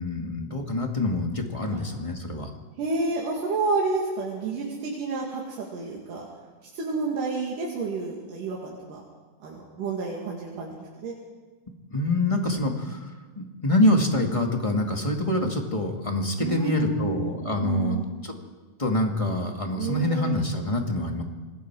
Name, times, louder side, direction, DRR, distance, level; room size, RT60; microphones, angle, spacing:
voice 1, 0.0-2.5 11.9-13.0 13.4-18.0 18.8-21.2, left 1 dB, 15° left, 2 dB, 1.5 m, -25 dB
voice 2, 2.8-6.3 6.7-9.0 9.4-10.8 11.0-11.1 16.4-17.3 17.6-18.1 19.8-20.4, right 3 dB, 85° right, -3 dB, 3.9 m, -30 dB
26.5 x 21.0 x 4.8 m, 1.3 s
omnidirectional pair, 3.7 m